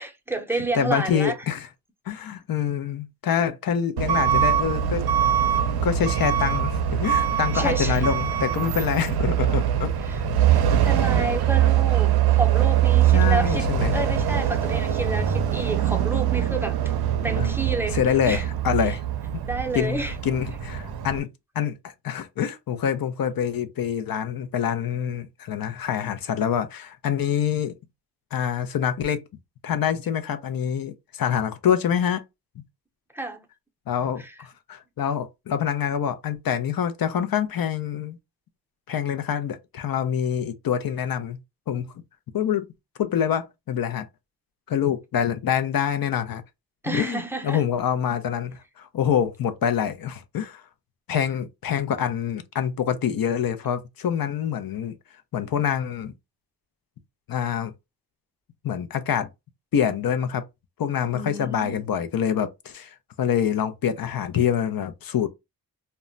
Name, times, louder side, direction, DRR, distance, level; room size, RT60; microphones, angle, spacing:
voice 1, 0.0-1.3 7.5-8.1 10.0-16.9 17.2-18.0 18.2-18.4 18.8-19.0 19.4-20.2 33.1-33.5 34.2-34.3 46.8-47.6 61.1-61.8, right 2 dB, 5° right, 0.6 m, -30 dB
voice 2, 0.7-1.7 2.1-5.1 5.8-9.9 11.1-11.2 13.1-13.9 17.4-17.5 17.9-19.0 19.7-21.3 21.6-27.7 28.3-29.2 29.6-32.2 33.9-38.2 38.9-41.4 41.7-41.9 42.3-42.7 43.0-44.1 44.7-46.4 46.9-50.6 51.1-55.0 55.3-56.1 57.3-57.7 58.6-59.3 59.7-60.4 60.8-65.3, left 8 dB, 60° left, 0.5 m, -26 dB
Truck / Alarm, 4.0-21.2, right 10 dB, 65° right, 0.5 m, -23 dB
2.2 x 2.1 x 3.7 m
cardioid pair, 80°, 40 cm